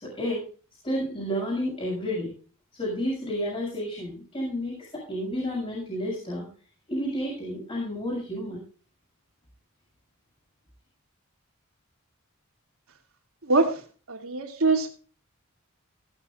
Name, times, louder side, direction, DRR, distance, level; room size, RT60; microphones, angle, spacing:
voice 1, 0.0-0.4 0.8-2.3 2.7-6.5 6.9-8.6, equal, 25° left, -5 dB, 7.0 m, -31 dB
voice 2, 13.5-13.8 14.1-14.9, right 3 dB, 80° right, 4 dB, 2.8 m, -23 dB
17.5 x 11.5 x 2.6 m, 0.38 s
head